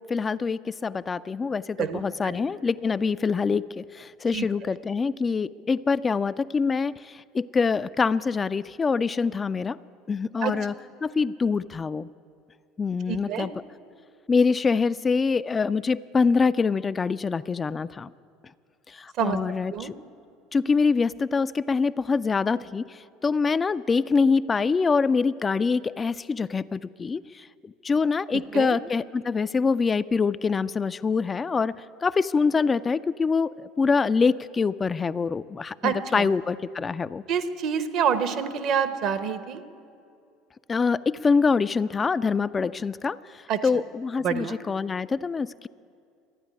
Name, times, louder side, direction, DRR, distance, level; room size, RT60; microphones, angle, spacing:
voice 1, 0.0-3.8 4.2-6.9 7.3-9.8 10.1-10.7 11.0-12.0 12.8-13.5 14.3-18.1 19.2-19.7 20.5-22.8 23.2-27.2 27.8-31.7 32.0-33.5 33.8-37.2 40.7-43.2 43.6-45.7, left 5 dB, 25° left, 14 dB, 0.3 m, -24 dB
voice 2, 1.8-2.4 4.3-4.5 10.4-10.5 13.1-13.5 19.2-19.4 19.7-19.9 28.3-28.8 35.8-36.3 37.3-39.6 43.5-43.6 44.2-44.6, right 7 dB, 55° right, 10 dB, 1.0 m, -27 dB
13.5 x 10.0 x 9.9 m, 2.4 s
hypercardioid pair, 70°, 0 cm